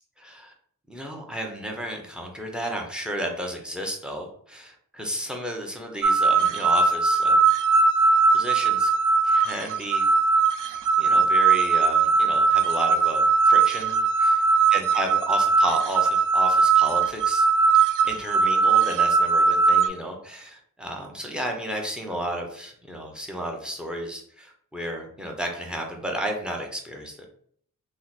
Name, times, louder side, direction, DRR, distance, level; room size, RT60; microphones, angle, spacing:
voice 1, 0.2-0.5 0.9-7.4 8.3-8.9 9.2-10.0 11.0-14.4 14.7-17.5 17.7-27.3, equal, 5° right, 2 dB, 0.7 m, -33 dB
sound 1, 6.0-19.9, right 4 dB, 65° right, 0.4 m, -20 dB
2.9 x 2.1 x 4.0 m, 0.63 s
cardioid pair, 60°, 34 cm